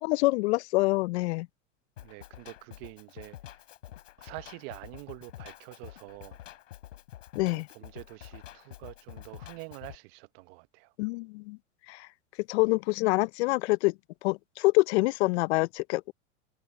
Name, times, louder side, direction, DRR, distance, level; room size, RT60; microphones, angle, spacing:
voice 1, 0.0-1.5 7.4-7.7 11.0-11.6 11.9-12.1 12.5-13.9 14.2-16.1, left 23 dB, 60° left, 0.6 m, -26 dB
Drum kit, 2.0-10.0, left 13 dB, 80° left, 3.2 m, -48 dB
voice 2, 2.0-3.4 4.2-6.4 7.4-10.9, right 27 dB, 55° right, 0.9 m, -46 dB
hypercardioid pair, 110°, 37 cm